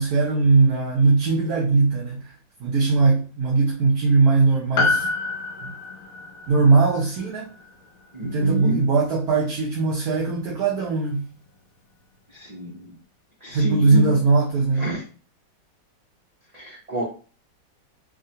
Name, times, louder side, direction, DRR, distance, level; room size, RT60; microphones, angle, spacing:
voice 1, 0.0-2.3 2.6-5.1 5.6-5.7 6.5-7.5 8.2-11.3 13.5-14.9, right 4 dB, 65° right, 1.1 m, -20 dB
Piano, 4.8-9.4 9.6-9.7, left 3 dB, 70° left, 0.9 m, -29 dB
voice 2, 8.1-8.8 12.3-13.0 13.4-14.2 14.8-15.0 16.5-17.0, left 1 dB, 90° right, 0.3 m, -29 dB
3.6 x 2.1 x 2.7 m
omnidirectional pair, 1.9 m